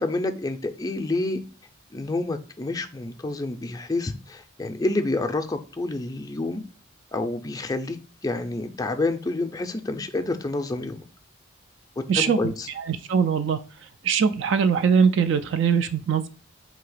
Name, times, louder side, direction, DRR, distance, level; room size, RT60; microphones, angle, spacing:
voice 1, 0.0-1.4 1.9-6.6 7.1-11.1 12.2-12.7, left 2 dB, 20° left, 6 dB, 0.4 m, -28 dB
voice 2, 12.1-13.6 14.0-16.3, right 6 dB, 60° right, 10 dB, 0.3 m, -22 dB
3.8 x 2.8 x 4.8 m, 0.37 s
head